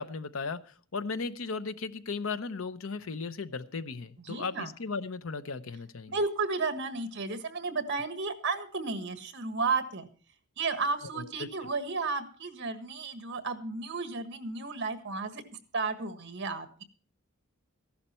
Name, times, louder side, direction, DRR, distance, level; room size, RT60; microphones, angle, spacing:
voice 1, 0.0-6.2 11.1-11.7, left 4 dB, 75° left, 13 dB, 0.8 m, -36 dB
voice 2, 4.3-4.7 6.1-10.1 10.6-15.4 15.7-16.8, right 4 dB, 60° right, 9 dB, 1.5 m, -33 dB
15.0 x 11.5 x 4.3 m, 0.39 s
head